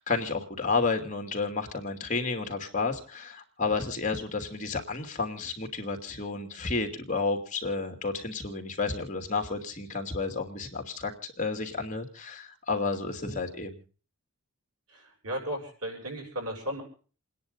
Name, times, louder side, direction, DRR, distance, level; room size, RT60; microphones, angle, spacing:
voice 1, 0.0-11.1 11.4-13.8, left 4 dB, 35° left, 4 dB, 2.8 m, -31 dB
voice 2, 14.9-16.8, equal, 90° right, 1 dB, 7.4 m, -35 dB
29.5 x 10.5 x 3.9 m, 0.40 s
head